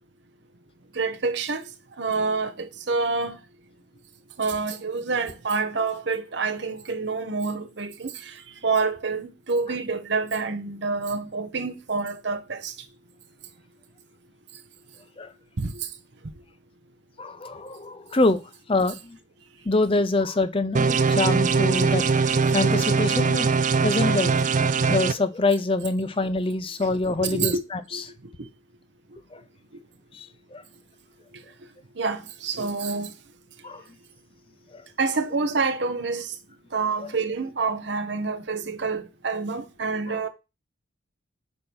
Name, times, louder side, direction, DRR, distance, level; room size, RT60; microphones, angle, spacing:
voice 1, 0.9-1.6 2.0-3.4 4.4-8.3 8.6-12.7 15.6-15.9 27.2-27.6 27.9-28.0 32.0-33.1 35.0-36.3 36.7-40.3, right 4 dB, 60° right, 0.9 m, -27 dB
voice 2, 17.2-19.2 19.7-22.0 22.5-23.5 23.8-24.4 24.9-28.0 29.3-29.4 30.1-30.6 33.6-33.8 34.7-34.8 40.1-40.2, left 2 dB, 30° left, 0.6 m, -25 dB
sound 1, 20.7-25.1, right 4 dB, 40° right, 0.4 m, -21 dB
8.6 x 2.9 x 6.2 m
head